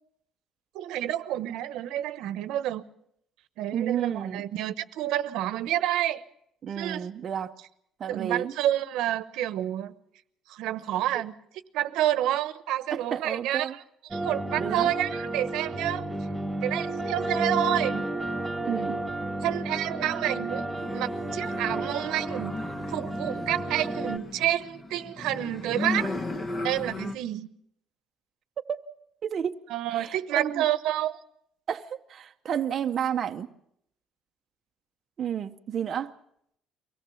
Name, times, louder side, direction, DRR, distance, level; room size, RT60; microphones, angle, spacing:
voice 1, 0.7-2.8 3.6-6.2 6.8-7.1 8.1-9.9 10.5-11.3 11.7-13.8 14.1-16.0 16.6-18.1 19.4-22.6 22.9-26.1 26.6-27.5 29.7-31.2, right 13 dB, 80° right, 1.0 m, -29 dB
voice 2, 3.7-4.5 6.6-7.5 8.0-8.5 12.9-13.8 14.6-14.9 18.7-19.0 28.6-28.8 29.2-29.6 29.9-30.7 31.7-33.5 35.2-36.1, right 8 dB, 35° right, 0.7 m, -31 dB
sound 1, 14.1-24.2, right 1 dB, 5° right, 1.9 m, -32 dB
sound 2, 20.8-27.1, left 2 dB, 25° left, 1.2 m, -36 dB
24.0 x 17.5 x 7.0 m
cardioid pair, 170°, 0 cm